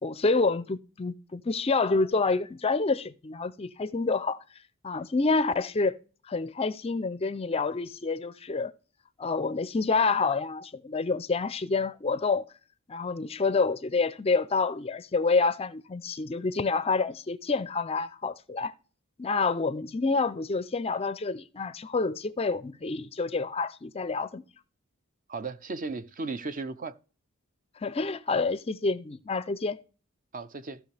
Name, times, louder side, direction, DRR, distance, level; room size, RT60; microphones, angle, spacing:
voice 1, 0.0-4.4 4.8-5.9 6.3-8.7 9.2-12.4 12.9-18.7 19.2-24.4 27.8-29.8, left 4 dB, 30° left, 0.4 m, -28 dB
voice 2, 25.3-26.9 30.3-30.8, right 3 dB, 40° right, 0.6 m, -35 dB
15.0 x 5.9 x 3.3 m
head